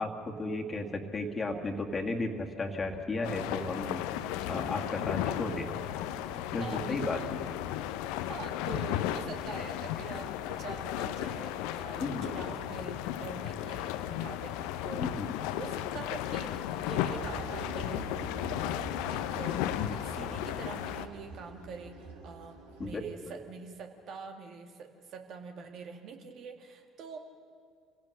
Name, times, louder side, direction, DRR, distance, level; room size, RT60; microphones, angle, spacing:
voice 1, 0.0-4.0 4.5-5.7 6.5-7.2 12.0-12.3 15.0-15.3 22.8-23.3, left 2 dB, 30° left, 2 dB, 2.1 m, -34 dB
sound 1, 3.2-21.1, left 11 dB, 65° left, 0.8 m, -35 dB
voice 2, 6.6-7.3 8.3-15.1 15.6-18.0 18.8-27.2, right 5 dB, 55° right, 4 dB, 2.1 m, -45 dB
sound 2, 17.0-22.9, right 3 dB, 75° right, 2.6 m, -45 dB
26.5 x 17.0 x 6.5 m, 2.3 s
figure-of-eight pair, 55°, 0 cm